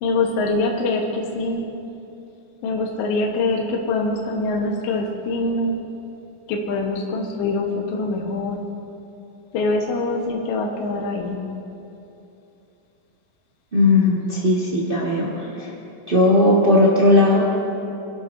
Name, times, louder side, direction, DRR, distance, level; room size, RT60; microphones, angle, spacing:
voice 1, 0.0-1.7 2.6-5.8 6.5-8.7 9.5-11.4, left 2 dB, 60° left, 0 dB, 1.7 m, -24 dB
voice 2, 13.7-15.7 16.1-17.4, left 2 dB, 75° right, -6 dB, 0.5 m, -17 dB
27.5 x 11.5 x 2.7 m, 2.8 s
omnidirectional pair, 4.2 m